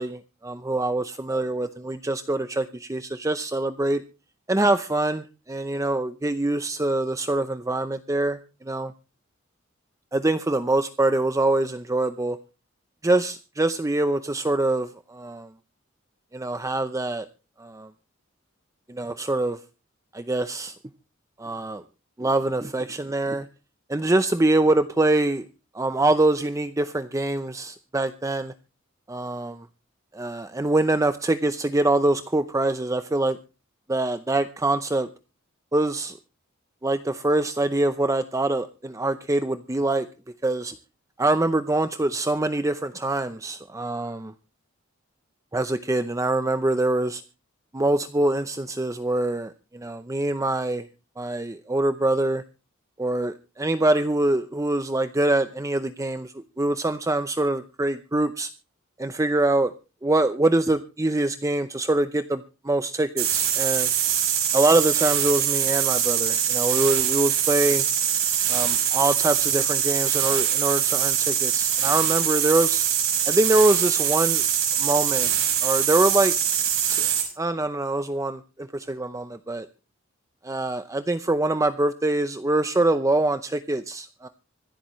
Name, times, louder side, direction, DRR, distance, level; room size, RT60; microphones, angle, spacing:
voice 1, 0.0-4.0 4.5-8.9 10.1-12.4 13.0-15.5 16.3-17.3 17.6-17.9 18.9-19.6 20.1-20.8 21.4-21.8 22.2-23.5 23.9-25.4 25.7-28.5 29.1-29.7 30.1-33.4 33.9-35.1 35.7-36.2 36.8-40.1 40.4-40.8 41.2-44.3 45.5-47.2 47.7-50.9 51.2-52.4 53.0-58.5 59.0-59.7 60.0-63.9 64.5-67.9 68.5-72.8 73.3-74.4 74.8-75.3 75.6-76.3 76.9-77.1 77.4-79.7 80.4-84.3, right 2 dB, 15° right, 10 dB, 0.6 m, -24 dB
sound 1, 63.2-77.3, right 9 dB, 85° right, 6.9 m, -23 dB
25.0 x 8.5 x 3.1 m, 0.32 s
head